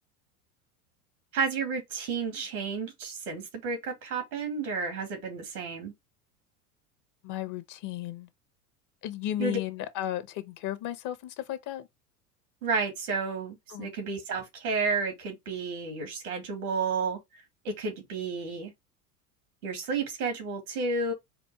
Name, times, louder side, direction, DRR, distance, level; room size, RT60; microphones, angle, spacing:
voice 1, 1.3-5.9 9.4-9.6 12.6-17.2 17.6-18.7 19.6-21.1, right 4 dB, 80° right, 2.3 m, -31 dB
voice 2, 7.2-8.3 9.0-11.9 13.7-13.9, left 12 dB, 45° left, 0.9 m, -34 dB
4.3 x 2.5 x 4.6 m
hypercardioid pair, 90°, 44 cm